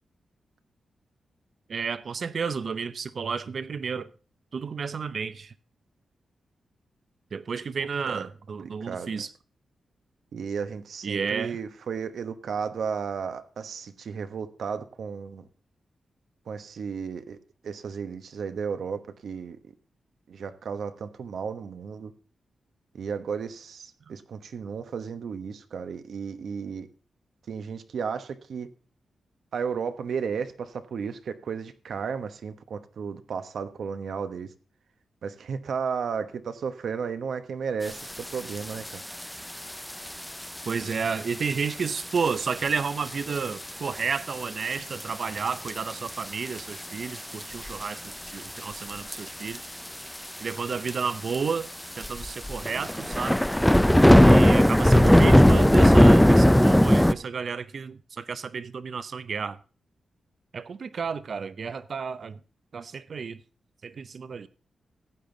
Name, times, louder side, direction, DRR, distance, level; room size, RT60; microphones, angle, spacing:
voice 1, 1.7-4.1 4.5-5.5 7.3-9.3 11.0-11.6 24.1-24.2 40.7-49.6 50.4-51.7 52.0-53.4 54.2-59.6 60.5-62.4 62.7-63.4 63.8-64.5, right 5 dB, 55° right, 0.7 m, -31 dB
voice 2, 7.8-8.3 8.6-9.3 10.3-15.4 16.5-17.4 17.6-19.6 20.3-22.1 22.9-26.9 27.5-28.7 29.5-34.5 35.2-39.0, right 6 dB, 75° right, 1.1 m, -34 dB
sound 1, 38.5-38.6 38.9-39.2 39.9-40.1 40.7-40.8 41.4-41.5 41.8-41.9 42.2-42.3 43.4-43.6 44.0-44.1 45.0-45.1 45.7-46.1 46.5-46.6 47.2-47.8 48.9-49.2 49.5-49.6 49.9-50.0 50.1-50.2 50.9-51.0 51.3-51.4 52.0-57.1, equal, 5° left, 0.5 m, -17 dB
15.0 x 8.9 x 3.9 m
wide cardioid pair, 110°, 0 cm